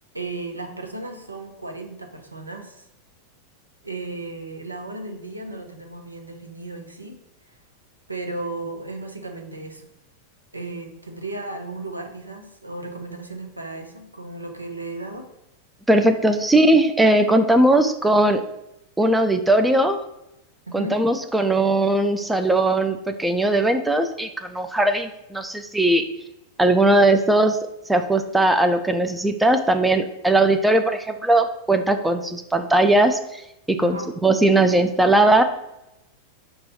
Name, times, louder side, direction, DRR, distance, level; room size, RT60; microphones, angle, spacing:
voice 1, 0.1-2.9 3.8-7.2 7.5-7.6 8.1-9.9 10.5-15.3 20.7-21.0 33.8-34.1, right 2 dB, 85° right, 4 dB, 0.7 m, -35 dB
voice 2, 15.9-18.4 19.0-20.0 20.7-26.0 26.6-27.6 27.9-33.4 33.7-35.4, right 1 dB, 5° right, 7 dB, 0.3 m, -19 dB
5.3 x 2.3 x 4.1 m, 0.87 s
figure-of-eight pair, 90°, 0 cm